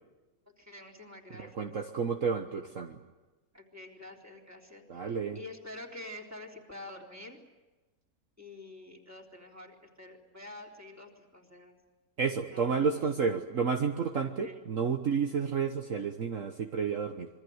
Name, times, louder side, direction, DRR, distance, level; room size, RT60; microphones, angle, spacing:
voice 1, 0.6-1.7 3.5-7.4 8.4-11.8 12.5-13.0 14.2-14.6, left 2 dB, 10° right, 0 dB, 3.7 m, -47 dB
voice 2, 1.4-3.0 4.9-5.4 12.2-17.3, right 6 dB, 50° right, 5 dB, 1.5 m, -31 dB
27.0 x 23.0 x 8.0 m, 1.2 s
omnidirectional pair, 1.8 m